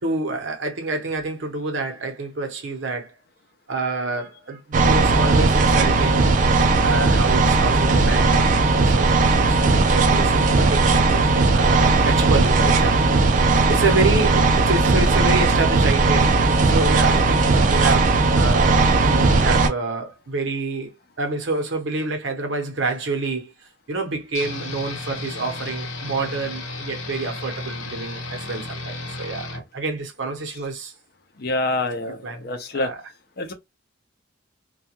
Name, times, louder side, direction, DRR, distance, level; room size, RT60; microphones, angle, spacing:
voice 1, 0.0-3.2 3.7-6.4 6.8-10.8 11.1-20.9 21.2-23.5 23.9-30.9 32.2-33.0, right 3 dB, 70° right, 0.8 m, -28 dB
sound 1, 4.7-19.7, right 3 dB, 40° right, 0.4 m, -17 dB
sound 2, 24.3-29.6, left 2 dB, 85° left, 0.8 m, -33 dB
voice 2, 31.4-32.9 33.4-33.5, left 2 dB, 50° left, 0.5 m, -26 dB
2.3 x 2.2 x 2.8 m
head